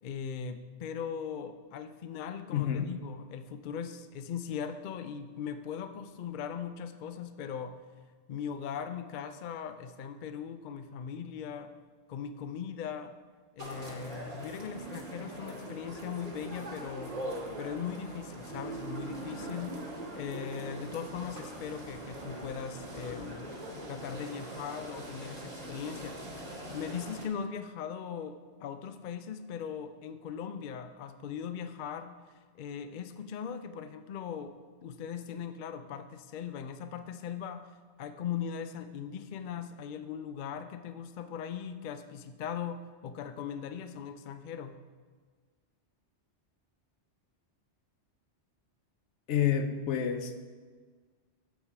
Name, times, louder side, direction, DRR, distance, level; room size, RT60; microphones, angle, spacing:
voice 1, 0.0-7.8 8.3-11.7 12.1-13.2 13.5-17.2 17.6-19.9 20.1-23.5 23.9-37.7 38.0-44.8, left 7 dB, 60° left, 10 dB, 0.5 m, -39 dB
voice 2, 2.5-2.9 49.3-50.3, left 9 dB, 80° left, 8 dB, 1.0 m, -29 dB
sound 1, 13.6-27.3, right 1 dB, 35° right, 1.3 m, -42 dB
7.3 x 6.9 x 4.6 m, 1.5 s
omnidirectional pair, 1.2 m